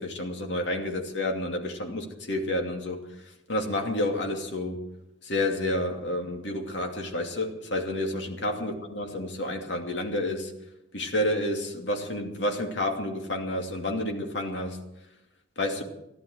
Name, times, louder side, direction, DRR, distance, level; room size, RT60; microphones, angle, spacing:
voice 1, 0.0-3.0 3.5-4.8 5.2-10.5 10.9-14.8 15.6-15.8, left 1 dB, 75° left, 2 dB, 2.6 m, -30 dB
15.5 x 11.5 x 7.9 m, 0.86 s
head